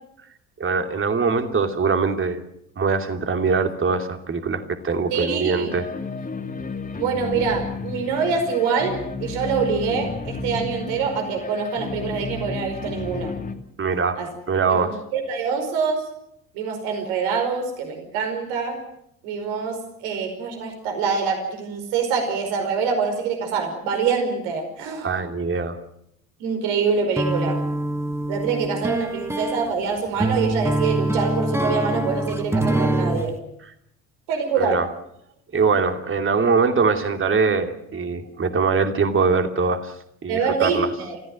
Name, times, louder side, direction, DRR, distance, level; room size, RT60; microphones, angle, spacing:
voice 1, 0.6-2.4 2.8-5.9 13.8-15.0 25.0-25.8 34.6-34.9 35.5-39.9 40.2-40.9, right 5 dB, 30° right, 6 dB, 2.8 m, -22 dB
voice 2, 5.1-5.7 7.0-13.3 14.2-14.3 14.7-16.1 16.5-18.8 19.2-25.2 26.4-27.6 28.3-33.4 34.3-34.8 40.3-41.2, right 5 dB, 60° right, 5 dB, 5.1 m, -25 dB
sound 1, 5.7-13.5, left 4 dB, 20° left, 2.5 m, -32 dB
sound 2, 27.2-33.3, right 1 dB, 5° right, 1.7 m, -24 dB
29.0 x 15.0 x 7.8 m, 0.75 s
figure-of-eight pair, 55°, 41 cm